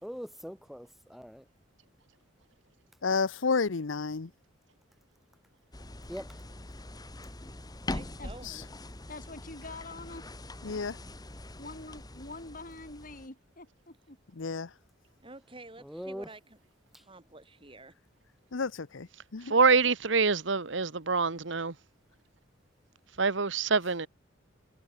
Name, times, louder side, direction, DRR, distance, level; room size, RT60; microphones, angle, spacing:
voice 1, 0.0-1.4 6.1-6.4 15.8-16.3, equal, ahead, 3.5 m, -41 dB
voice 2, 3.0-4.3 8.4-8.6 10.6-11.0 14.3-14.7 18.5-19.6, left 4 dB, 80° left, 0.8 m, -31 dB
sound 1, 5.7-13.3, left 1 dB, 20° left, 1.5 m, -43 dB
voice 3, 7.8-8.7 15.2-16.6 17.0-17.9, right 2 dB, 25° right, 4.0 m, -49 dB
voice 4, 9.1-10.2 11.6-14.2, left 2 dB, 45° left, 6.0 m, -45 dB
voice 5, 19.5-21.7 23.2-24.1, right 4 dB, 70° right, 1.3 m, -25 dB
head